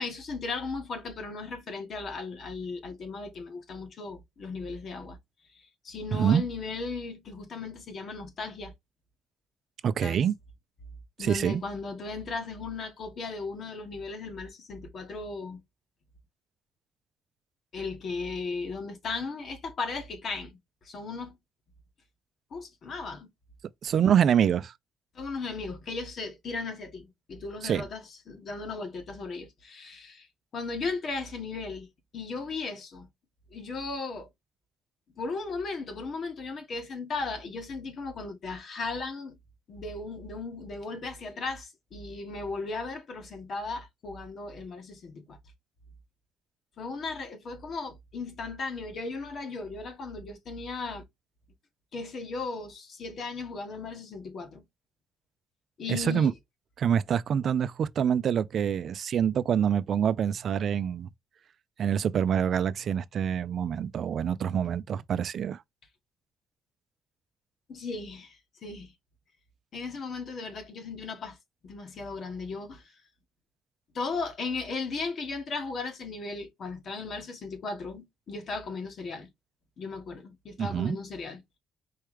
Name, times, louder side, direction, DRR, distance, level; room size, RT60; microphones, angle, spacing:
voice 1, 0.0-5.2 5.6-8.7 10.0-10.2 11.2-15.6 17.7-20.6 20.8-21.4 22.5-23.3 25.2-30.3 30.5-31.9 32.1-33.1 33.5-34.3 35.2-39.4 39.7-45.4 46.8-51.0 51.9-54.6 55.8-56.3 67.7-68.9 69.7-71.4 71.6-72.9 73.9-79.3 79.8-81.4, left 4 dB, 60° left, 1.6 m, -36 dB
voice 2, 6.1-6.4 9.8-10.3 11.2-11.6 23.8-24.7 27.6-27.9 55.9-56.3 56.8-61.1 61.8-65.6 80.6-81.0, right 8 dB, 60° right, 0.4 m, -26 dB
4.6 x 3.2 x 3.4 m
cardioid pair, 90°, 0 cm